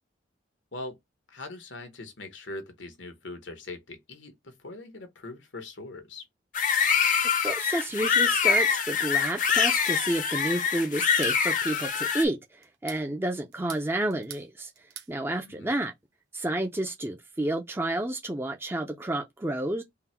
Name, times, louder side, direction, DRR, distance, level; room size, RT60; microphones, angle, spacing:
voice 1, 1.3-6.3 15.5-15.8, left 2 dB, 80° left, 1.1 m, -41 dB
sound 1, 6.5-12.2, left 6 dB, 40° left, 0.6 m, -25 dB
voice 2, 7.4-12.4 12.8-14.7 15.1-15.9 16.3-19.8, right 1 dB, 10° right, 0.4 m, -30 dB
sound 2, 11.0-11.4 12.6-13.1 13.5-14.5 14.7-15.1, right 10 dB, 60° right, 0.9 m, -44 dB
3.7 x 2.2 x 4.2 m
head